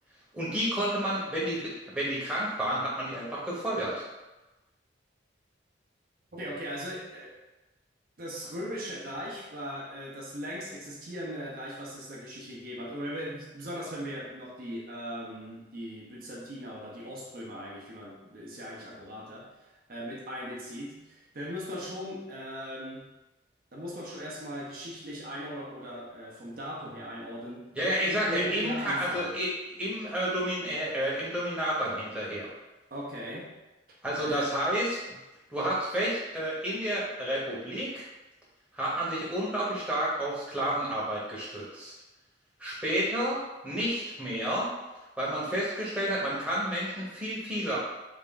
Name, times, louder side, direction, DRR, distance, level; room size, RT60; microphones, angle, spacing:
voice 1, 0.3-4.0 27.7-32.5 34.0-35.0 35.5-38.1 38.7-41.9 42.6-44.7 45.2-47.8, equal, 5° right, -7 dB, 0.8 m, -30 dB
voice 2, 6.3-7.4 8.2-23.0 23.7-29.3 32.9-33.6 34.2-34.5, equal, 50° right, -4 dB, 0.6 m, -39 dB
3.4 x 2.4 x 3.7 m, 1.0 s
head